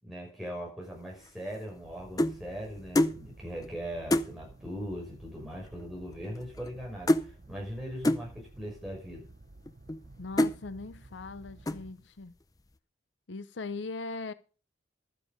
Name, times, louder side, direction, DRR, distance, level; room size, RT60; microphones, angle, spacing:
voice 1, 0.0-9.2, equal, ahead, 5.8 m, -40 dB
sound 1, 1.2-2.4 2.9-3.2 3.6-3.7 4.1-4.3 5.2-5.3 5.5-5.9 6.1-6.8 7.1-7.3 8.0-8.3 9.0-9.1 9.7-10.0 10.4-10.6 11.1-11.4 11.7-12.0, left 1 dB, 20° left, 0.5 m, -27 dB
sound 2, 1.8-11.9, right 2 dB, 50° right, 0.8 m, -53 dB
voice 2, 10.2-12.3 13.3-14.3, left 3 dB, 80° left, 0.7 m, -39 dB
12.5 x 9.4 x 5.3 m
head